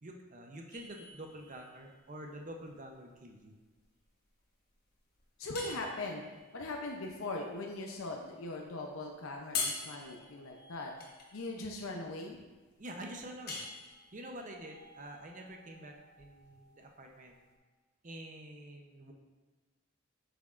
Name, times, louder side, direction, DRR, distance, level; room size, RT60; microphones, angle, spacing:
voice 1, 0.0-3.6 12.8-13.6 14.1-17.4 18.0-19.1, right 1 dB, 35° right, 2 dB, 0.7 m, -47 dB
sound 1, 0.7-17.6, left 4 dB, 45° left, 1.1 m, -45 dB
voice 2, 5.4-6.2 6.5-10.9 11.3-12.4, left 2 dB, 75° left, 1 dB, 0.6 m, -40 dB
8.0 x 6.0 x 2.5 m, 1.3 s
head